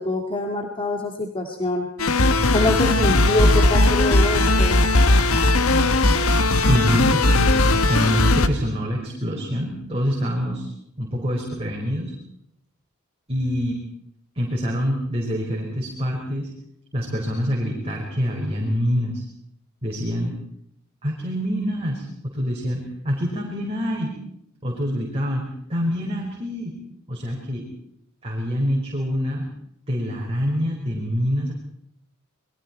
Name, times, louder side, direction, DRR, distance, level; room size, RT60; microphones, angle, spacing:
voice 1, 0.0-1.9 2.5-4.8, left 2 dB, 25° left, 3 dB, 2.2 m, -25 dB
sound 1, 2.0-8.5, left 2 dB, 90° left, 1.6 m, -18 dB
voice 2, 6.7-10.7 11.0-12.1 13.3-13.8 14.4-16.5 16.9-19.2 19.8-20.3 21.0-24.2 24.6-25.4 25.7-26.8 27.1-27.7 28.2-29.5 29.9-31.5, equal, 30° right, -2 dB, 5.2 m, -25 dB
29.0 x 22.0 x 4.5 m, 0.73 s
head